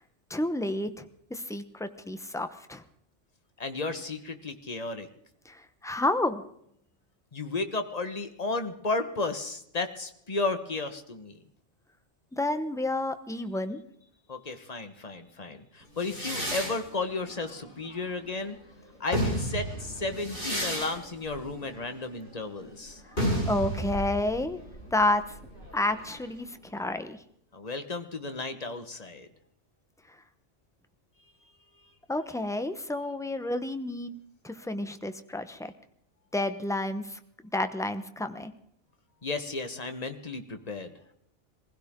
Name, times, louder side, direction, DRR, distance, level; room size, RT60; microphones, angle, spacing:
voice 1, 0.3-2.8 5.5-6.4 12.3-13.8 23.5-24.6 24.9-25.2 25.7-27.2 32.1-34.1 34.4-35.7 36.3-37.2 37.5-38.5, left 2 dB, 5° left, 9 dB, 0.8 m, -30 dB
voice 2, 3.6-5.1 7.3-11.4 14.3-18.5 19.0-23.0 27.5-29.3 39.2-40.9, left 3 dB, 35° left, 8 dB, 1.4 m, -33 dB
sound 1, 16.0-18.5 18.9-26.4, equal, 70° left, 7.2 m, -34 dB
23.0 x 16.0 x 3.7 m, 0.71 s
omnidirectional pair, 1.2 m